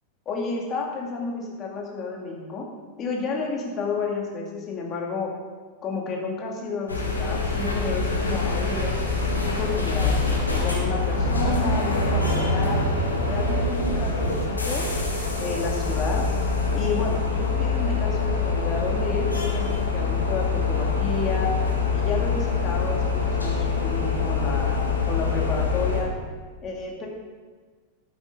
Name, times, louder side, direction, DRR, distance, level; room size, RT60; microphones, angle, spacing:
voice 1, 0.3-2.7 3.0-5.3 5.8-10.2 10.6-12.8 13.3-14.9 15.4-16.3 16.7-21.5 21.9-26.1 26.6-27.1, left 4 dB, 30° left, -1 dB, 2.4 m, -31 dB
sound 1, 6.9-26.0, left 3 dB, 80° left, 1.9 m, -24 dB
12.5 x 8.8 x 3.9 m, 1.4 s
figure-of-eight pair, 90°, 0 cm